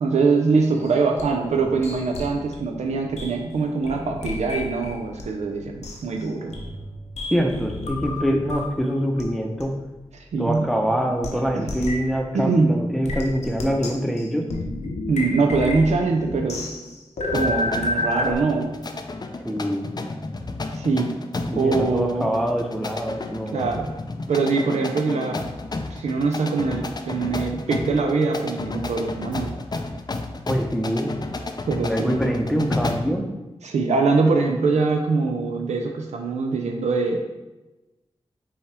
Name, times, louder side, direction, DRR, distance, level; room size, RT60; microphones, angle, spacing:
voice 1, 0.0-6.6 10.3-10.8 11.3-11.7 12.3-12.9 15.1-16.7 17.3-18.8 20.7-21.1 21.5-22.3 23.5-23.9 24.3-25.4 25.9-29.6 31.7-32.2 33.6-37.2, right 4 dB, 90° right, 2 dB, 0.4 m, -23 dB
sound 1, 0.8-5.2 5.5-8.8 9.2-9.3 9.6-9.7 10.5-10.6 11.2-11.3 11.7-12.1 13.0-18.4, left 2 dB, 85° left, 0.6 m, -31 dB
voice 2, 7.3-9.7 10.4-14.4 19.4-19.9 21.5-23.7 30.5-31.1 31.8-33.3, equal, ahead, 2 dB, 0.7 m, -24 dB
sound 2, 17.3-33.2, left 3 dB, 40° left, 0.4 m, -32 dB
5.4 x 2.3 x 3.3 m, 1.1 s
cardioid pair, 45°, 11 cm